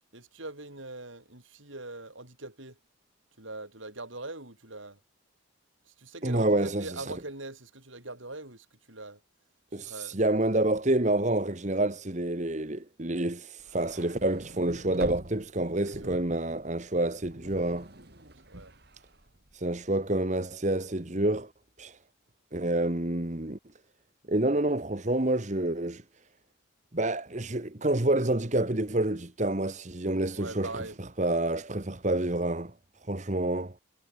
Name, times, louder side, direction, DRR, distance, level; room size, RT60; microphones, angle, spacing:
voice 1, 0.1-2.8 3.4-5.0 5.8-9.2 9.7-10.2 15.8-16.2 18.5-18.8 30.4-31.0, right 2 dB, 75° right, 7.1 m, -42 dB
voice 2, 6.2-6.9 9.7-17.9 19.5-21.5 21.8-22.0 22.5-23.6 24.3-26.0 26.9-30.8 31.2-32.7 33.1-33.7, right 1 dB, 35° right, 1.4 m, -28 dB
sound 1, 13.6-19.9, right 1 dB, 50° right, 3.4 m, -45 dB
head